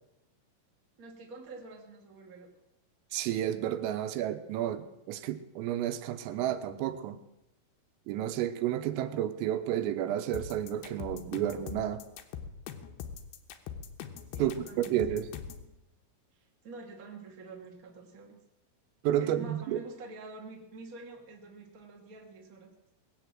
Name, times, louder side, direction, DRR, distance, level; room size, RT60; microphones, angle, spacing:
voice 1, 1.0-2.5 14.3-15.2 16.3-18.4 19.2-22.7, right 3 dB, 55° right, 0 dB, 0.9 m, -47 dB
voice 2, 3.1-7.2 8.1-12.0 14.4-14.5 14.8-15.3 19.0-19.8, right 11 dB, 85° right, 10 dB, 3.4 m, -31 dB
sound 1, 10.3-15.7, left 7 dB, 85° left, 2.2 m, -42 dB
19.5 x 8.3 x 7.6 m, 0.89 s
omnidirectional pair, 6.0 m